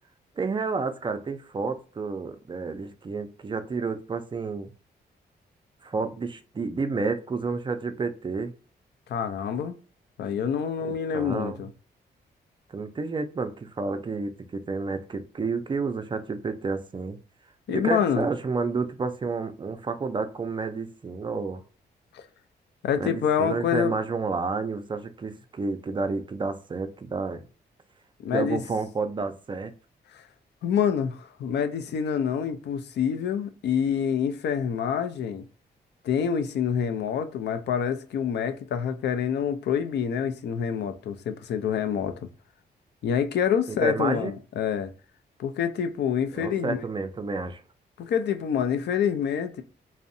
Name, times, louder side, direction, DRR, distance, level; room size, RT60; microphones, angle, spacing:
voice 1, 0.4-4.7 5.8-8.5 11.1-11.6 12.7-17.2 17.7-21.6 23.0-27.4 28.3-29.7 43.8-44.3 46.3-47.6, right 4 dB, 25° right, 0.3 m, -30 dB
voice 2, 9.1-9.8 10.2-11.7 17.7-18.3 22.1-22.2 22.8-23.9 28.2-28.6 30.1-30.2 30.6-35.5 36.0-42.3 43.0-44.9 45.4-46.8 48.0-49.6, left 8 dB, 75° left, 0.4 m, -27 dB
2.6 x 2.0 x 2.5 m
cardioid pair, 85°, 18 cm